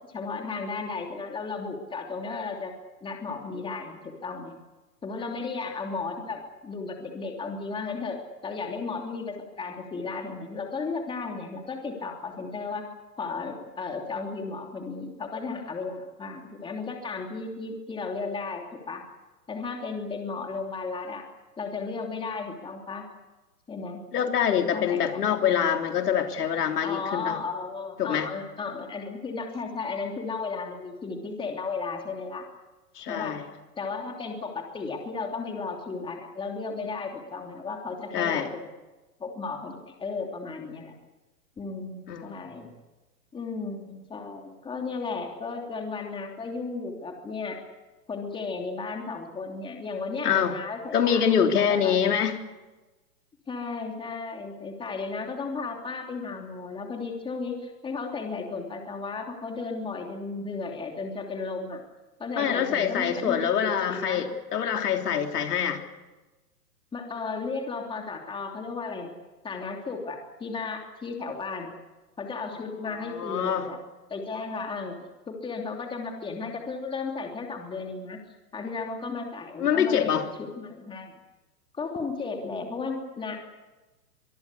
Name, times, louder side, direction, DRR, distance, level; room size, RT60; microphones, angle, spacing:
voice 1, 0.1-2.7 3.0-4.6 5.0-12.8 13.2-19.0 19.5-21.2 21.6-23.1 23.7-24.0 24.7-25.7 26.8-32.4 33.1-33.4 33.8-38.6 39.2-41.0 41.6-42.7 43.3-47.6 48.1-52.2 53.5-61.8 62.2-64.2 66.9-69.1 69.4-71.7 72.2-73.8 74.1-75.0 75.3-78.2 78.5-81.1 81.7-83.4, left 4 dB, 10° left, 2 dB, 3.0 m, -34 dB
voice 2, 24.1-27.4 28.0-28.3 33.0-33.4 38.1-38.5 42.1-42.5 50.2-50.5 50.9-52.4 62.4-65.8 72.9-73.6 79.6-80.2, left 8 dB, 70° left, 4 dB, 3.5 m, -25 dB
24.5 x 22.5 x 8.4 m, 1.2 s
hypercardioid pair, 135°, 48 cm